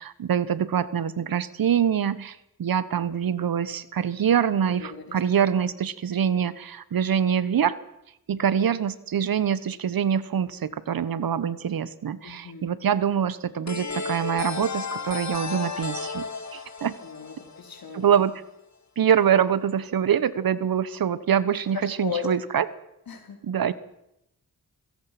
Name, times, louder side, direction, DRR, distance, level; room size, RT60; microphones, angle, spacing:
voice 1, 0.0-7.7 8.3-16.3 16.5-16.9 17.9-18.3 19.0-22.7 23.4-23.7, right 8 dB, 65° right, 16 dB, 1.2 m, -24 dB
voice 2, 4.7-5.2 12.2-12.7 17.0-18.1 22.0-22.2 23.1-23.4, left 7 dB, 70° left, 4 dB, 4.3 m, -36 dB
sound 1, 13.7-18.3, left 5 dB, 45° left, 1.9 m, -34 dB
26.5 x 17.0 x 6.0 m, 0.82 s
cardioid pair, 55°, 37 cm